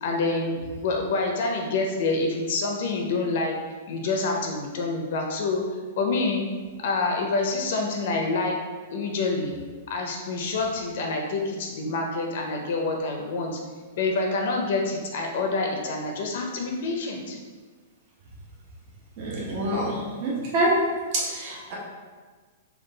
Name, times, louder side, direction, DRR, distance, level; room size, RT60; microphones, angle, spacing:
voice 1, 0.0-3.6 3.9-5.6 6.0-6.4 6.8-8.6 8.9-9.5 9.9-13.6 14.0-17.4, left 3 dB, 55° left, 1 dB, 0.5 m, -27 dB
voice 2, 19.2-20.8 21.1-21.7, right 1 dB, 35° right, -5 dB, 0.9 m, -26 dB
3.7 x 2.3 x 3.8 m, 1.5 s
supercardioid pair, 165°, 0 cm